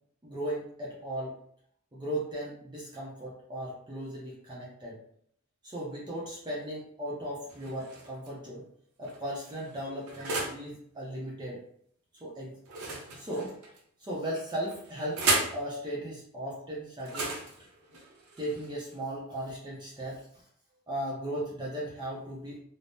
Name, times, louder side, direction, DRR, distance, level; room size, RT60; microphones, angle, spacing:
voice 1, 0.2-1.3 1.9-5.0 5.6-8.7 9.0-11.6 12.2-12.6 13.2-13.5 14.0-15.2 15.5-17.3 18.4-20.2 20.9-22.6, right 1 dB, 20° right, -5 dB, 0.6 m, -36 dB
sound 1, 7.5-8.3 9.0-10.7 12.7-13.8 14.6-15.6 17.0-19.0, right 3 dB, 75° right, 0.7 m, -34 dB
3.4 x 2.0 x 2.6 m, 0.65 s
head